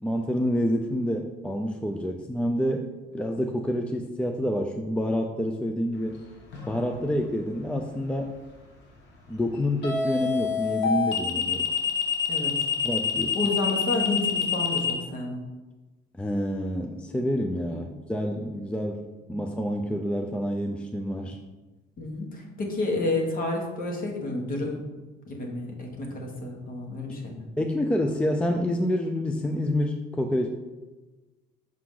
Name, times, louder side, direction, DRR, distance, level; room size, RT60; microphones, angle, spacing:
voice 1, 0.0-2.9 3.1-6.1 6.7-8.3 9.3-11.7 12.8-13.4 16.2-21.4 27.1-27.3 27.6-30.5, equal, 5° left, 3 dB, 0.4 m, -28 dB
sound 1, 6.5-6.9 9.8-14.9, left 7 dB, 65° left, 1.2 m, -26 dB
voice 2, 13.3-15.4 17.7-17.8 19.3-19.4 22.0-24.8 25.3-27.5, left 2 dB, 45° left, 1 dB, 1.4 m, -30 dB
5.9 x 4.5 x 3.8 m, 1.2 s
cardioid pair, 110°, 20 cm